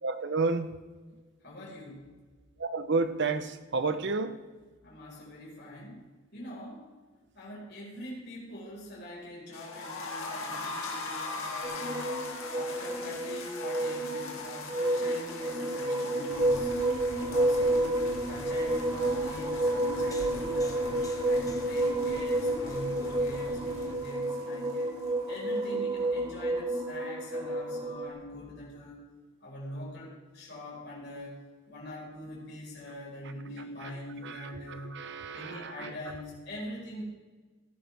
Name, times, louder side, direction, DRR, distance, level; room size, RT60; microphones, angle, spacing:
voice 1, 0.0-0.7 2.6-4.4 33.8-33.9 34.2-34.3 34.7-35.9, right 3 dB, 55° right, 10 dB, 0.9 m, -31 dB
voice 2, 1.4-2.1 4.8-6.0 6.3-6.9 7.3-12.1 12.5-16.7 17.2-17.9 18.3-24.9 25.3-29.0 29.4-31.4 31.7-35.0 35.3-37.0, left 1 dB, 55° left, -5 dB, 4.9 m, -43 dB
sound 1, 9.5-25.4 25.6-25.7 26.0-26.1, left 3 dB, 80° left, 2.3 m, -42 dB
sound 2, 11.6-28.1, right 1 dB, 20° right, 1.2 m, -30 dB
sound 3, 16.3-24.0, left 1 dB, 15° left, 1.2 m, -47 dB
17.5 x 11.0 x 3.5 m, 1.3 s
head